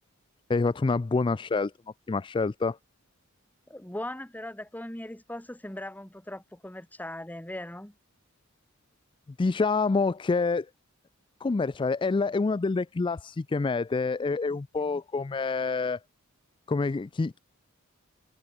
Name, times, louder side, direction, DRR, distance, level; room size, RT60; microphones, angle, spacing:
voice 1, 0.5-1.7 2.1-2.8 9.4-10.7 11.4-16.0 16.7-17.4, left 4 dB, 25° left, 0.3 m, -27 dB
voice 2, 3.7-7.9 14.5-14.6 14.9-15.0, left 1 dB, 10° left, 1.3 m, -39 dB
head